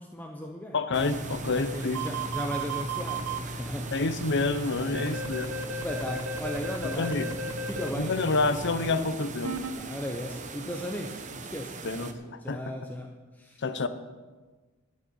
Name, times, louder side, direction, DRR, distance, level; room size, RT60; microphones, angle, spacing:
voice 1, 0.0-0.8 1.6-3.9 4.8-5.2 5.7-8.2 8.9-9.1 9.7-13.6, equal, 10° left, 2 dB, 0.7 m, -37 dB
voice 2, 0.7-2.0 3.9-5.6 7.0-7.3 7.9-9.6 11.8-12.6 13.6-13.9, left 3 dB, 55° left, 12 dB, 0.8 m, -28 dB
sound 1, 0.9-8.9, equal, 10° right, 1.3 m, -39 dB
sound 2, 0.9-12.1, right 4 dB, 35° right, 0.9 m, -42 dB
sound 3, 1.9-3.4 4.9-7.9 9.4-9.7, right 3 dB, 80° right, 0.9 m, -34 dB
12.5 x 6.6 x 8.6 m, 1.3 s
head